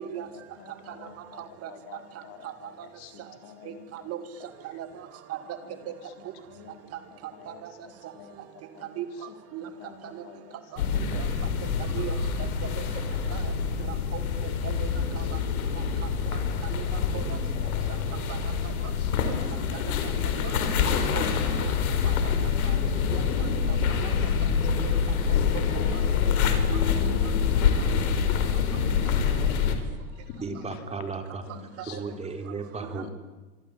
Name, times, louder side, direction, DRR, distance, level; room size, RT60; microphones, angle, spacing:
voice 1, 0.0-4.1 5.6-6.0 6.5-8.4 8.7-9.0 9.6-11.7 13.0-13.4 15.0-15.1 15.8-16.3 16.6-17.2 17.5-18.3 18.6-19.1 21.9-22.2 22.6-23.1 24.6-24.9 26.4-26.5 29.7-29.9 30.1-31.1 31.5-32.0 33.0-33.1, left 7 dB, 45° left, 7 dB, 3.7 m, -49 dB
voice 2, 1.4-1.7 2.4-2.5 3.7-4.2 4.7-5.4 5.9-6.0 7.5-7.7 9.0-9.1 9.5-9.7 10.1-10.2 10.7-10.8 11.1-11.3 11.9-12.2 12.6-12.7 13.3-13.5 14.1-14.9 15.2-15.4 16.7-17.2 18.3-18.4 19.2-19.4 19.8-19.9 20.4-20.5 20.8-21.3 21.6-21.7 22.0-22.1 22.6-22.7 23.1-23.2 23.7-24.1 24.8-24.9 31.9-32.0 32.8-32.9, right 12 dB, 35° right, 10 dB, 2.2 m, -38 dB
sound 1, 10.8-29.7, left 6 dB, 75° left, 4.8 m, -26 dB
voice 3, 30.4-31.4 31.9-33.1, right 4 dB, 15° right, 6 dB, 3.3 m, -35 dB
26.0 x 24.5 x 8.8 m, 1.2 s
supercardioid pair, 130°, 43 cm